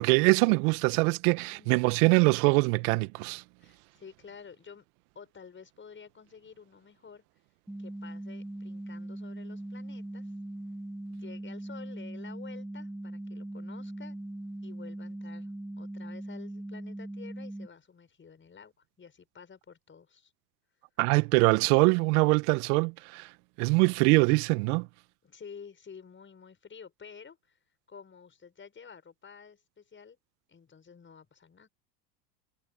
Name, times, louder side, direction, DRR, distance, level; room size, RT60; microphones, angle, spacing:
voice 1, 0.0-3.4 21.0-23.3 23.6-24.9, right 28 dB, 60° right, 1.7 m, -23 dB
voice 2, 1.5-2.2 3.6-4.8 5.1-7.2 7.8-10.3 11.1-14.2 14.6-15.5 15.8-20.3 25.2-27.6 27.9-30.2 30.5-31.7, left 6 dB, 25° left, 6.8 m, -50 dB
sound 1, 7.7-17.7, right 1 dB, 5° right, 0.8 m, -40 dB
hypercardioid pair, 90°, 49 cm